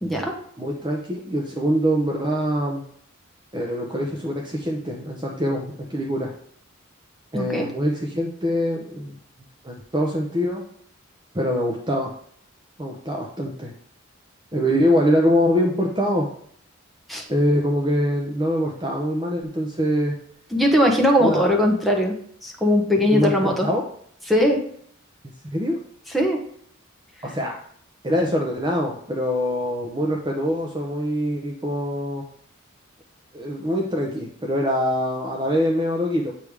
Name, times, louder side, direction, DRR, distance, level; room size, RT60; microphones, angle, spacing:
voice 1, 0.0-0.3 7.3-7.7 17.1-17.2 20.5-22.2 22.4-23.7 24.3-24.6 26.1-26.4, equal, ahead, -1 dB, 1.1 m, -20 dB
voice 2, 0.6-2.8 3.5-6.3 7.3-9.1 9.6-10.6 11.3-12.1 12.8-13.7 14.5-16.3 17.3-20.1 21.2-21.4 23.1-23.8 25.5-25.8 27.2-27.6 28.0-32.2 33.3-36.3, equal, 20° right, 0 dB, 0.7 m, -24 dB
8.4 x 3.4 x 4.8 m, 0.62 s
head